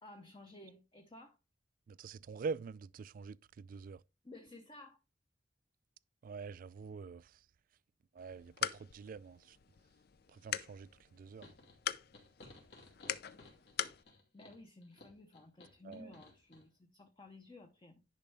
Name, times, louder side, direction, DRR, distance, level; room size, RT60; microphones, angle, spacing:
voice 1, 0.0-1.4 4.2-5.0 14.3-18.0, left 2 dB, 25° left, 0.8 m, -55 dB
voice 2, 1.9-4.0 6.2-7.3 8.2-9.6 10.3-11.5 15.8-16.1, right 5 dB, 45° right, 0.3 m, -45 dB
sound 1, 8.2-14.0, left 9 dB, 55° left, 0.5 m, -43 dB
sound 2, 11.4-16.6, left 2 dB, 70° left, 2.5 m, -58 dB
10.5 x 5.2 x 3.4 m
head